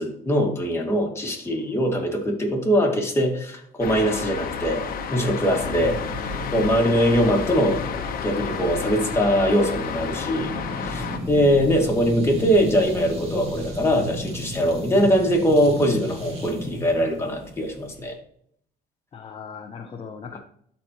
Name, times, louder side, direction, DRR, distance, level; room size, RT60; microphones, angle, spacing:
voice 1, 0.0-6.0 6.5-7.8 8.2-10.5 10.8-18.2, equal, 15° left, 0 dB, 2.2 m, -22 dB
sound 1, 3.8-11.2, left 5 dB, 60° left, 1.2 m, -30 dB
voice 2, 5.8-6.4 11.1-11.7 19.1-20.4, left 6 dB, 35° left, 4 dB, 0.8 m, -38 dB
sound 2, 10.1-18.1, equal, 35° right, 2.4 m, -34 dB
12.5 x 4.4 x 3.0 m, 0.66 s
cardioid pair, 110°, 17 cm